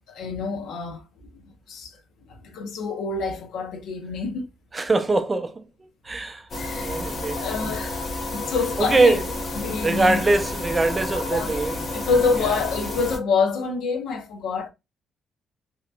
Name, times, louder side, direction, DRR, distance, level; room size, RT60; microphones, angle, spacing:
voice 1, 0.1-1.0 1.3-1.4 1.7-2.0 2.3-4.5 6.6-7.0 7.3-8.0 8.3-9.2 9.6-10.2 11.3-11.5 11.9-14.7, left 4 dB, 85° left, 0.7 m, -26 dB
voice 2, 4.7-6.5 6.8-7.4 8.8-9.2 9.8-11.8, right 3 dB, 25° right, 0.4 m, -22 dB
sound 1, 6.5-13.2, left 2 dB, 45° left, 0.9 m, -30 dB
2.8 x 2.3 x 2.4 m
cardioid pair, 90°, 0 cm